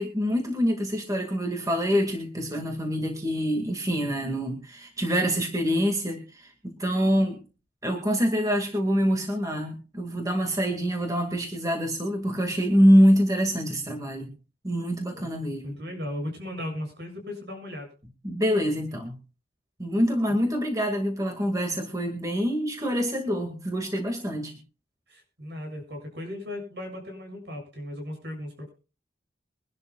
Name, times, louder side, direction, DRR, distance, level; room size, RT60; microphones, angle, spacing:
voice 1, 0.0-7.4 7.8-14.3 14.6-15.7 18.2-19.2 19.8-24.6, equal, 20° right, 3 dB, 2.0 m, -25 dB
voice 2, 15.6-17.9 25.1-28.7, left 1 dB, 65° right, 3 dB, 7.4 m, -36 dB
23.5 x 12.0 x 2.4 m, 0.34 s
head